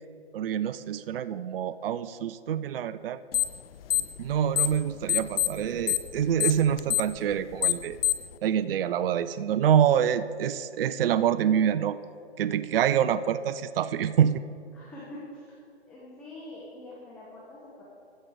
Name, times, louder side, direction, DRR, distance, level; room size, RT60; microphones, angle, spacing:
voice 1, 0.3-3.2 4.2-8.0 8.4-12.0 12.4-14.4, right 9 dB, 55° right, 14 dB, 0.4 m, -26 dB
sound 1, 3.3-3.6 3.9-4.8 5.1-8.3, left 12 dB, 60° left, 0.5 m, -25 dB
voice 2, 14.7-15.5 15.9-17.8, left 1 dB, 5° left, -7 dB, 0.4 m, -44 dB
14.5 x 5.1 x 6.3 m, 2.4 s
hypercardioid pair, 145°, 34 cm